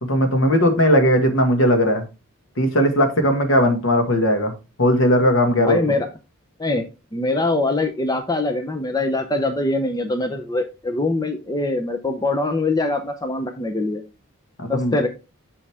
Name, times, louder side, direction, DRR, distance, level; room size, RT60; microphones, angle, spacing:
voice 1, 0.0-2.1 2.6-4.5 4.8-5.8 14.6-15.0, equal, 65° left, 5 dB, 1.7 m, -18 dB
voice 2, 5.5-6.1 6.6-6.9 7.1-14.0 14.7-15.1, left 2 dB, 20° left, 6 dB, 0.6 m, -23 dB
7.3 x 5.5 x 3.4 m, 0.29 s
head